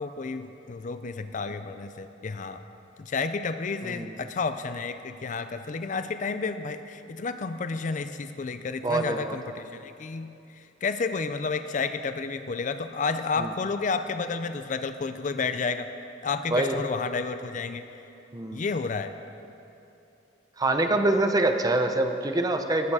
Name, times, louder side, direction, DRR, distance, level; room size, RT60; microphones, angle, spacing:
voice 1, 0.0-2.6 3.0-15.9 16.2-18.0 18.5-19.1, left 4 dB, 45° left, 10 dB, 0.4 m, -31 dB
voice 2, 3.8-4.1 8.8-9.4 13.4-13.5 16.5-16.8 18.3-18.6 20.6-22.9, right 2 dB, 20° right, 6 dB, 0.7 m, -25 dB
18.0 x 8.9 x 4.8 m, 2.8 s
head